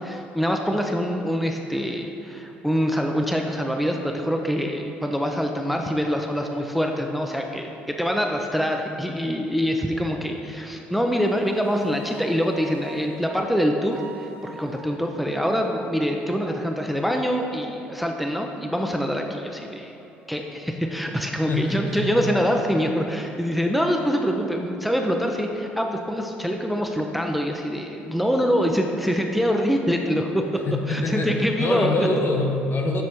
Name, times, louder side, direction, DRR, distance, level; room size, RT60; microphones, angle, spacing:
voice 1, 0.0-20.0 20.3-30.6 30.9-31.9, equal, ahead, 2 dB, 0.5 m, -25 dB
sound 1, 11.1-13.4 13.9-16.9 17.6-20.8, right 4 dB, 45° right, 0.7 m, -48 dB
voice 2, 21.5-22.2 30.7-33.0, left 2 dB, 45° left, 2 dB, 0.8 m, -25 dB
6.3 x 4.2 x 4.1 m, 2.9 s
hypercardioid pair, 50°, 5 cm